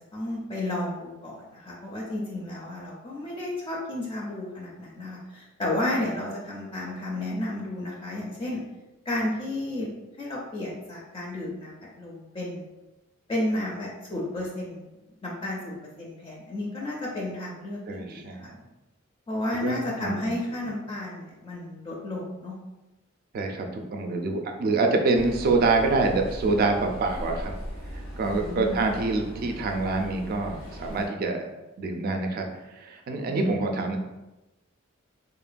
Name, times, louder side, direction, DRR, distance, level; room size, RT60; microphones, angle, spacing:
voice 1, 0.0-8.6 9.1-9.9 10.2-12.6 13.3-14.9 15.2-18.4 19.3-22.6 28.3-28.8, left 1 dB, 25° left, -4 dB, 0.4 m, -32 dB
voice 2, 17.9-18.6 19.6-20.3 23.3-27.5 27.9-31.5 31.8-32.5 32.7-34.0, right 3 dB, 50° right, 4 dB, 0.3 m, -26 dB
sound 1, 25.1-31.1, equal, 85° left, 1.1 m, -39 dB
2.9 x 2.2 x 2.5 m, 1.0 s
head